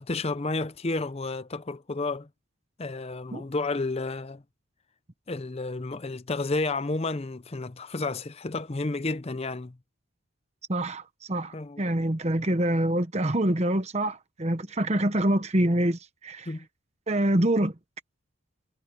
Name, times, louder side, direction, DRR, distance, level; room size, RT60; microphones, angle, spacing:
voice 1, 0.0-2.3 2.8-4.4 5.3-9.8 11.5-11.8 16.5-16.7, left 3 dB, 30° left, 0.6 m, -31 dB
voice 2, 10.7-16.5 17.1-17.7, right 1 dB, 30° right, 1.0 m, -26 dB
head